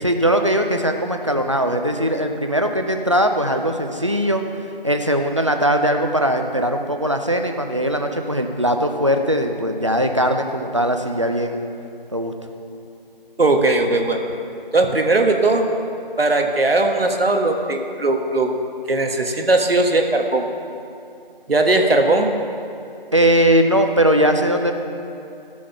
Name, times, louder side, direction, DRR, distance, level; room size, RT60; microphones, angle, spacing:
voice 1, 0.0-4.4 4.8-11.6 12.1-12.3 23.1-24.7, right 1 dB, 30° right, 5 dB, 0.5 m, -20 dB
voice 2, 13.4-14.2 14.7-15.7 16.2-18.6 18.9-20.5 21.5-22.4, right 2 dB, 80° right, 4 dB, 1.3 m, -18 dB
13.5 x 6.3 x 5.6 m, 2.6 s
figure-of-eight pair, 170°, 29 cm